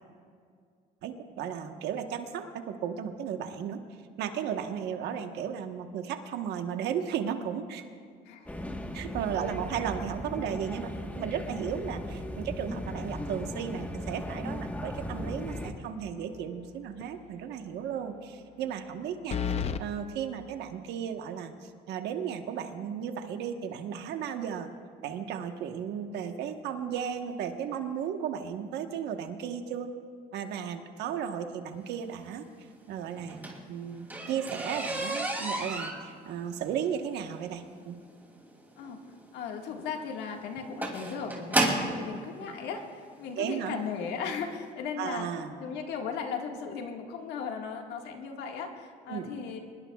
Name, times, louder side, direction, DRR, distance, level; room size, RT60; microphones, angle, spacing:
voice 1, 1.0-3.8 4.2-7.8 8.9-19.4 19.8-24.7 25.0-29.9 30.3-32.5 32.9-37.9 43.4-43.8 45.0-45.5 49.1-49.3, right 8 dB, 80° right, 6 dB, 1.2 m, -35 dB
sound 1, 8.5-15.7, left 1 dB, 10° left, 1.3 m, -37 dB
sound 2, 16.2-16.7 17.0-17.1 19.3-19.8, left 7 dB, 40° left, 0.7 m, -31 dB
sound 3, 33.2-42.0 42.9-43.0 43.6-43.8 44.1-44.2 44.5-44.6, right 1 dB, 10° right, 2.7 m, -32 dB
voice 2, 39.3-45.3 45.6-49.6, left 6 dB, 85° left, 2 dB, 1.8 m, -37 dB
24.0 x 20.5 x 2.4 m, 2.2 s
cardioid pair, 110°, 17 cm